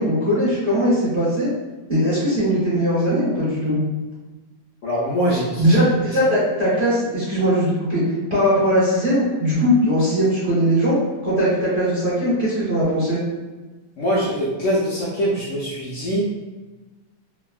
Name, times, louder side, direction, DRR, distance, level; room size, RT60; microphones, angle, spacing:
voice 1, 0.0-1.5 1.9-3.8 5.6-8.0 8.3-11.0 11.2-13.2, equal, 25° right, -11 dB, 1.0 m, -19 dB
voice 2, 4.8-5.6 14.0-16.2, equal, 75° left, -6 dB, 0.7 m, -23 dB
3.2 x 2.1 x 2.3 m, 1.2 s
omnidirectional pair, 1.9 m